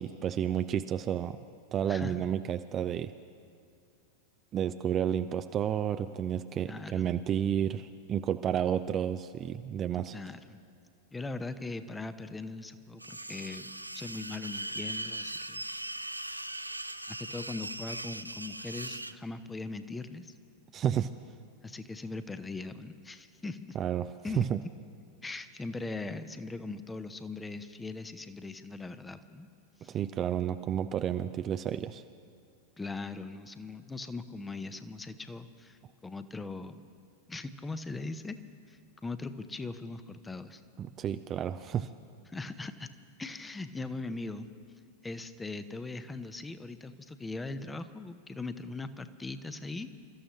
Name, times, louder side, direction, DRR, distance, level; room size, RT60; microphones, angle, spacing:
voice 1, 0.0-1.4 1.7-3.1 4.5-10.1 20.7-21.1 23.7-24.1 24.4-24.6 29.9-32.0 40.8-41.9, right 9 dB, 30° right, 10 dB, 0.4 m, -31 dB
voice 2, 1.9-2.3 6.7-7.1 10.1-10.6 11.1-15.6 17.1-20.3 21.6-23.8 24.2-24.5 25.2-29.5 29.8-30.0 32.8-36.8 37.3-38.4 38.7-40.6 42.3-42.9 43.2-44.5 45.0-49.9, left 3 dB, 10° left, 11 dB, 0.8 m, -40 dB
sound 1, 13.0-19.1, right 1 dB, 85° right, 0.4 m, -39 dB
28.0 x 14.0 x 3.1 m, 2.3 s
figure-of-eight pair, 90°, 0 cm